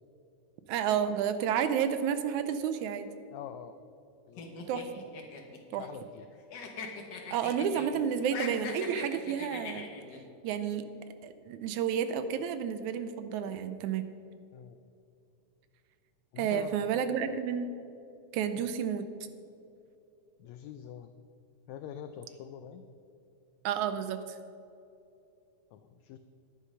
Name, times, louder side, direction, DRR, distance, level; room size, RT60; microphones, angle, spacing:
voice 1, 0.7-3.1 4.7-5.0 5.7-5.8 7.3-9.9 10.4-10.9 11.2-14.1 16.4-17.7 18.3-19.1 23.6-24.4, right 8 dB, 80° right, 10 dB, 1.8 m, -31 dB
voice 2, 3.3-3.8 4.3-4.4 5.8-6.3 14.5-14.8 16.3-17.4 18.6-18.7 20.4-21.1 21.7-22.8 25.7-26.2, left 9 dB, 85° left, 9 dB, 1.6 m, -45 dB
sound 1, 4.4-6.2 6.5-7.9 8.2-10.2, left 5 dB, 65° left, 1.1 m, -41 dB
10.5 x 10.0 x 5.4 m, 2.7 s
omnidirectional pair, 3.7 m